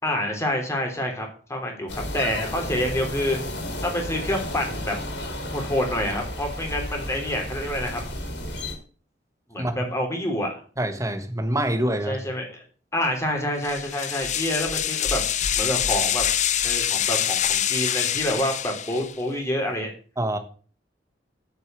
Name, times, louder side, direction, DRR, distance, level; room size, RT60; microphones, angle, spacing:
voice 1, 0.0-3.4 3.8-5.0 5.5-8.0 9.5-10.5 12.1-12.6 12.9-15.2 15.5-16.2 16.6-19.9, left 1 dB, 15° left, 1 dB, 3.3 m, -27 dB
sound 1, 1.9-8.7, left 1 dB, 70° left, 3.3 m, -33 dB
voice 2, 9.6-9.9 10.8-12.2 20.2-20.4, right 1 dB, 20° right, 8 dB, 1.4 m, -26 dB
sound 2, 13.6-19.2, left 10 dB, 40° left, 0.6 m, -25 dB
8.3 x 6.8 x 7.5 m, 0.40 s
head